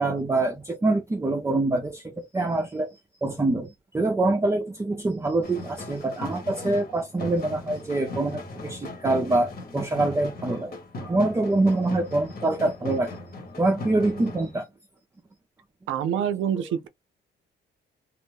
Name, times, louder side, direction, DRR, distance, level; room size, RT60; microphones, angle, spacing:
voice 1, 0.0-10.8 11.0-13.2 13.6-14.7, right 2 dB, 15° right, 0.5 m, -25 dB
sound 1, 5.4-14.6, left 2 dB, 50° left, 1.3 m, -38 dB
voice 2, 15.9-16.9, right 9 dB, 75° right, 0.5 m, -26 dB
2.5 x 2.0 x 3.4 m
cardioid pair, 90°, 20 cm